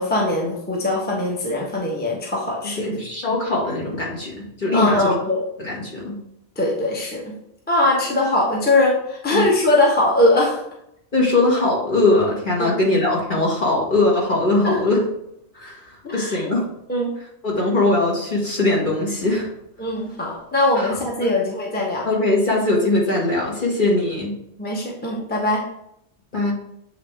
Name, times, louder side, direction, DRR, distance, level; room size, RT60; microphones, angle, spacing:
voice 1, 0.0-3.0 4.7-5.4 6.6-7.4 7.7-10.6 12.6-12.7 14.6-14.8 16.0-16.5 16.9-17.1 19.8-22.1 24.6-25.7, left 2 dB, 10° left, -3 dB, 1.0 m, -21 dB
voice 2, 2.8-5.1 5.6-6.2 9.3-9.4 11.1-15.0 15.5-15.8 16.1-16.6 17.4-19.5 20.8-20.9 21.2-21.3 22.0-24.3 26.3-26.5, left 2 dB, 50° left, -4 dB, 1.9 m, -21 dB
8.0 x 3.4 x 3.4 m, 0.78 s
omnidirectional pair, 1.1 m